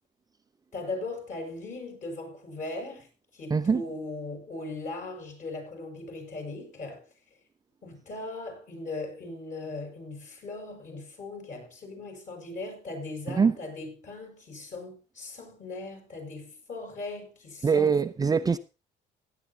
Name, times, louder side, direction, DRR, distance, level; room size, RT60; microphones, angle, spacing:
voice 1, 0.7-3.1 3.3-7.1 7.8-18.0, left 2 dB, 50° left, 6.8 m, -39 dB
voice 2, 3.5-3.8 13.3-13.6 17.6-18.6, right 5 dB, 20° right, 0.6 m, -23 dB
16.5 x 11.0 x 2.9 m
cardioid pair, 110°, 17 cm